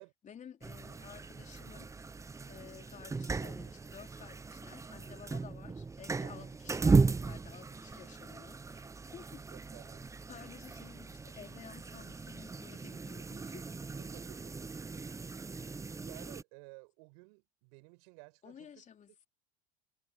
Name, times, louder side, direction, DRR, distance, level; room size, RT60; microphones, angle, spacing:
voice 1, 0.2-1.9 2.5-9.4 10.3-13.7 18.4-19.3, left 8 dB, 35° left, 4.0 m, -53 dB
sound 1, 0.6-16.4, right 4 dB, 15° right, 0.7 m, -36 dB
voice 2, 6.2-6.5 9.5-10.1 14.1-14.5 16.0-18.8, right 34 dB, 70° right, 6.0 m, -54 dB
hypercardioid pair, 75°, 21 cm